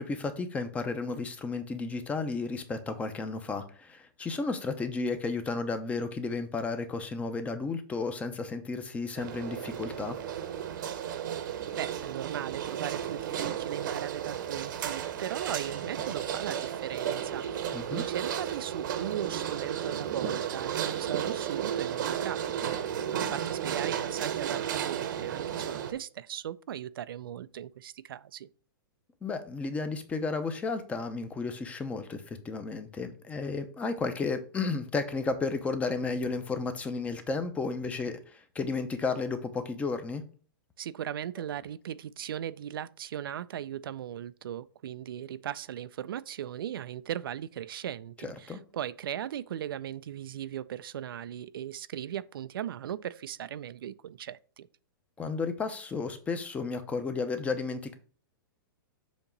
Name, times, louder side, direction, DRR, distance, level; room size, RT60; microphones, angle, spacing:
voice 1, 0.0-10.2 17.7-18.0 29.2-40.2 48.2-48.6 55.2-57.9, left 4 dB, 10° left, 0.6 m, -33 dB
sound 1, 9.2-25.9, right 9 dB, 60° right, 0.9 m, -33 dB
voice 2, 11.4-28.5 40.8-54.7, right 10 dB, 80° right, 0.4 m, -38 dB
7.1 x 2.9 x 5.2 m
hypercardioid pair, 150°, 12 cm